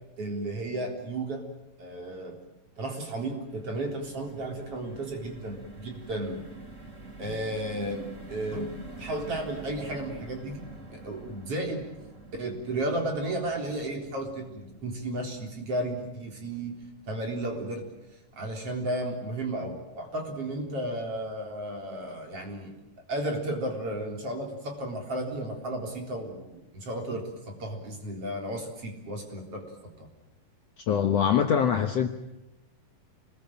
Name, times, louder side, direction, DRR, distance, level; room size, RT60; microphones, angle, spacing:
voice 1, 0.2-1.4 1.8-2.4 2.8-6.4 7.2-10.6 10.9-11.9 12.4-16.8 17.1-17.8 18.4-22.7 23.1-29.7 30.0-30.1, right 1 dB, 40° right, 2 dB, 4.7 m, -33 dB
sound 1, 3.0-19.3 19.7-19.8 20.1-20.3, right 2 dB, 25° right, 2.6 m, -48 dB
voice 2, 30.8-32.1, left 8 dB, 60° left, 5 dB, 1.9 m, -23 dB
27.0 x 20.0 x 8.9 m, 0.96 s
omnidirectional pair, 4.0 m